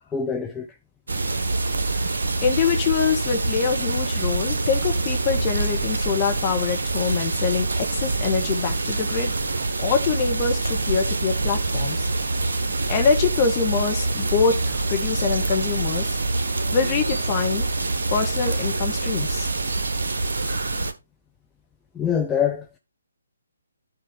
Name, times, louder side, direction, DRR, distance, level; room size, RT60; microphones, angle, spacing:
voice 1, 0.1-0.7 21.9-22.8, left 7 dB, 10° left, 0.6 m, -24 dB
sound 1, 1.1-20.9, right 3 dB, 60° right, 1.1 m, -25 dB
voice 2, 2.4-12.1 12.9-16.2 16.7-17.7 18.1-19.5, left 6 dB, 30° left, 1.4 m, -25 dB
11.0 x 4.5 x 3.6 m
figure-of-eight pair, 135°, 0 cm